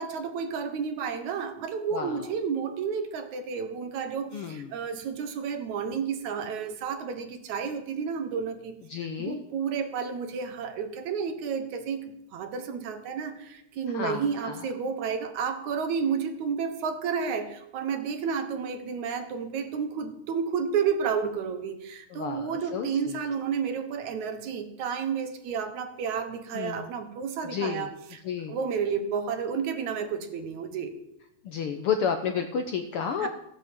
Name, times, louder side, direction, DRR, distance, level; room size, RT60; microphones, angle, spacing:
voice 1, 0.0-8.8 9.2-28.2 28.5-30.9 33.2-33.3, right 6 dB, 75° right, 8 dB, 2.6 m, -31 dB
voice 2, 1.9-2.3 4.3-4.7 8.9-9.4 13.9-14.7 22.1-23.2 26.5-26.9 27.5-27.9 28.2-28.6 31.4-33.3, left 6 dB, 70° left, 6 dB, 1.3 m, -31 dB
15.5 x 7.8 x 7.6 m, 0.83 s
omnidirectional pair, 3.4 m